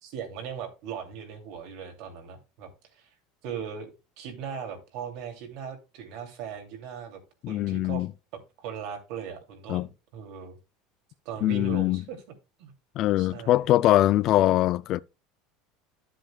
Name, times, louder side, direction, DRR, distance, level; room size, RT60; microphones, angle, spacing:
voice 1, 0.0-3.0 3.4-3.9 4.2-7.2 7.5-8.1 8.3-10.6 11.2-12.2 12.6-12.7 13.2-13.6, right 7 dB, 65° right, 2.5 m, -38 dB
voice 2, 7.4-8.1 9.7-9.9 11.4-12.0 13.0-15.0, left 14 dB, 45° left, 0.3 m, -22 dB
11.5 x 7.6 x 2.2 m
supercardioid pair, 150°, 0 cm